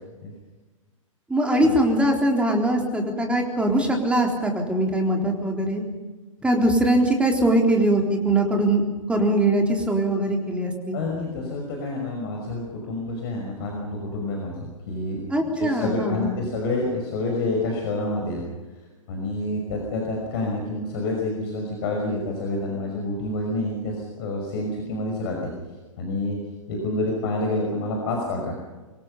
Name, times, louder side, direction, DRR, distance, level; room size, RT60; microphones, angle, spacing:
voice 1, 1.3-5.8 6.4-11.0 15.3-16.4, right 1 dB, 5° right, 2 dB, 3.8 m, -22 dB
voice 2, 10.9-15.2 15.6-18.4 19.1-25.4 26.0-26.4 26.7-28.5, left 2 dB, 45° left, 0 dB, 5.6 m, -28 dB
26.0 x 22.0 x 5.6 m, 1.3 s
figure-of-eight pair, 110°, 17 cm